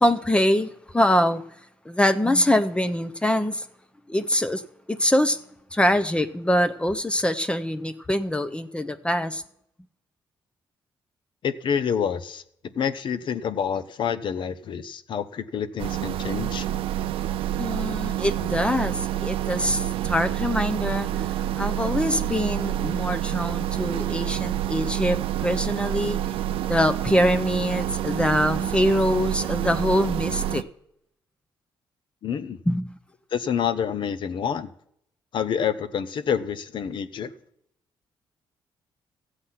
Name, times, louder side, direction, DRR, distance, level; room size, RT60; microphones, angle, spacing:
voice 1, 0.0-1.4 1.9-3.7 4.1-4.6 4.9-5.4 5.7-9.4 17.6-26.2 26.6-30.6 32.7-32.9, left 1 dB, 10° left, 9 dB, 0.7 m, -24 dB
voice 2, 11.4-12.4 12.7-16.7 32.2-32.6 33.3-34.7 35.3-37.3, left 7 dB, 60° left, 13 dB, 0.8 m, -27 dB
sound 1, 15.8-30.6, right 12 dB, 85° right, 0.5 m, -28 dB
14.0 x 8.0 x 5.8 m, 0.72 s
cardioid pair, 100°, 9 cm